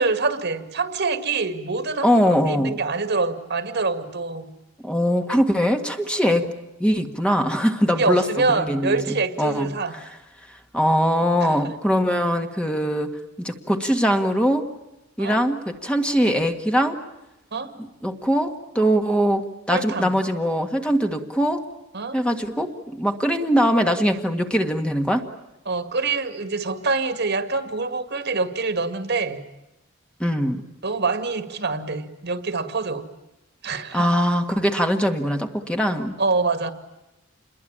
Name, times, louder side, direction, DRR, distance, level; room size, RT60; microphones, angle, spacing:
voice 1, 0.0-4.5 6.3-6.5 7.9-10.0 11.4-11.7 15.2-15.4 17.5-17.7 19.7-20.2 21.9-22.2 25.7-29.4 30.8-33.0 33.6-34.1 36.2-36.7, right 3 dB, 55° right, 9 dB, 2.2 m, -25 dB
voice 2, 2.0-2.8 4.8-6.5 6.8-9.0 9.4-9.7 10.7-14.7 15.2-17.0 17.8-21.6 22.1-25.2 30.2-30.6 33.9-36.2, equal, 5° left, 5 dB, 1.8 m, -22 dB
28.0 x 21.5 x 8.8 m, 0.92 s
head